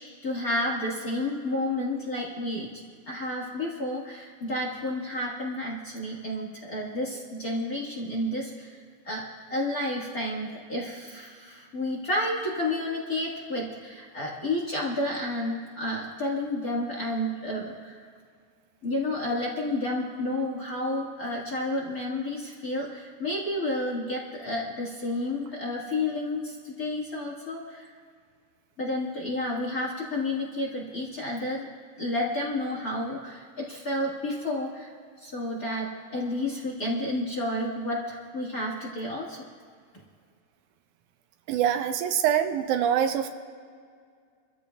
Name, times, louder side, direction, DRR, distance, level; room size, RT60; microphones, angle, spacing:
voice 1, 0.0-2.7 3.1-8.8 9.1-9.2 9.5-18.0 18.8-27.9 28.8-31.7 32.0-34.9 35.2-39.4, left 1 dB, 35° left, -4 dB, 1.7 m, -31 dB
voice 2, 41.5-43.3, right 9 dB, 80° right, 7 dB, 2.2 m, -24 dB
27.5 x 14.0 x 2.3 m, 2.1 s
omnidirectional pair, 3.6 m